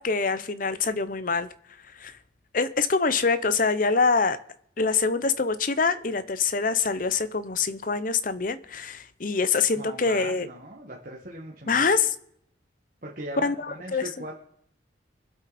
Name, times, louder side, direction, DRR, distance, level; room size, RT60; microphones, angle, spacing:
voice 1, 0.0-1.5 2.0-2.1 2.5-4.4 4.8-10.5 11.7-12.1 13.4-14.1, left 4 dB, 45° left, 0.7 m, -25 dB
voice 2, 9.7-11.9 13.0-14.4, right 1 dB, 45° right, 1.8 m, -39 dB
24.5 x 8.3 x 4.2 m
head